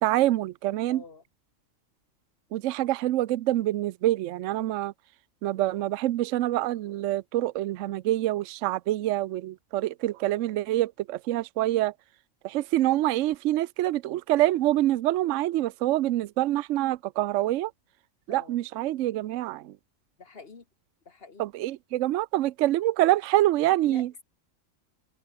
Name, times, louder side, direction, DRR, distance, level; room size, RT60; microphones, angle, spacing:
voice 1, 0.0-1.0 2.5-4.9 5.4-11.9 12.4-17.7 18.3-19.7 21.4-24.1, right 15 dB, 75° right, 0.9 m, -26 dB
voice 2, 0.9-1.2 18.3-18.6 20.2-20.6 21.1-21.4 23.8-24.2, left 4 dB, 50° left, 1.8 m, -46 dB
open air
omnidirectional pair, 1.4 m